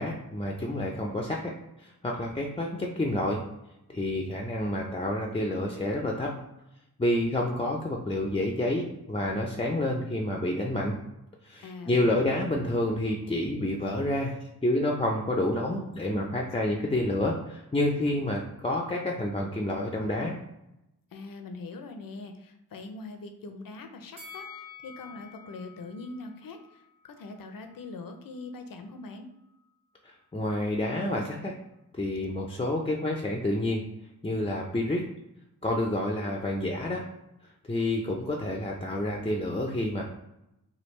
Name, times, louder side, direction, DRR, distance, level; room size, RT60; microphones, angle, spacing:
voice 1, 0.0-1.5 1.8-3.4 3.9-6.3 7.0-11.0 11.4-20.4 30.3-31.5 31.9-33.8 34.2-35.0 35.6-37.0 37.7-40.0, left 1 dB, 15° left, 0 dB, 0.5 m, -29 dB
voice 2, 11.6-12.4 21.1-29.3, left 3 dB, 60° left, 6 dB, 0.6 m, -42 dB
Bell, 24.2-27.4 27.7-27.8, left 5 dB, 55° right, 1.3 m, -48 dB
3.3 x 2.3 x 3.1 m, 0.89 s
cardioid pair, 40°, 38 cm